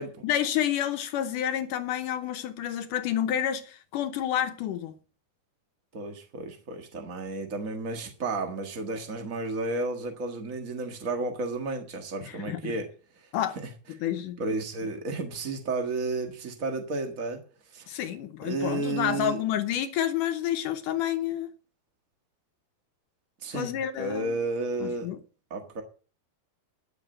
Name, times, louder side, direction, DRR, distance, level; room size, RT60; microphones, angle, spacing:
voice 1, 0.2-4.9 12.3-12.7 13.3-13.6 14.0-14.4 17.9-21.5 23.5-24.4 24.8-25.2, left 10 dB, 75° left, 2.3 m, -29 dB
voice 2, 5.9-12.9 13.6-13.7 14.4-17.4 17.7-17.9 18.4-19.4 23.4-25.1 25.5-25.8, right 3 dB, 45° right, 1.0 m, -32 dB
12.0 x 7.3 x 7.6 m
omnidirectional pair, 4.1 m